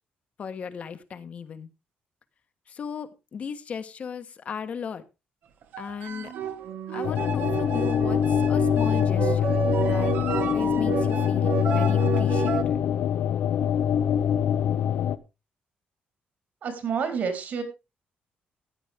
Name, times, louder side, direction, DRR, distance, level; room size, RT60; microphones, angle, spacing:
voice 1, 0.4-1.7 2.7-5.0 5.8-6.3 6.9-12.8, left 6 dB, 40° left, 10 dB, 1.2 m, -36 dB
sound 1, 5.6-12.6, right 8 dB, 70° right, 1.4 m, -30 dB
sound 2, 7.0-15.2, left 9 dB, 80° left, 0.8 m, -24 dB
voice 2, 16.6-17.6, right 6 dB, 55° right, 6 dB, 3.8 m, -28 dB
14.5 x 10.0 x 3.6 m, 0.27 s
cardioid pair, 155°, 3 cm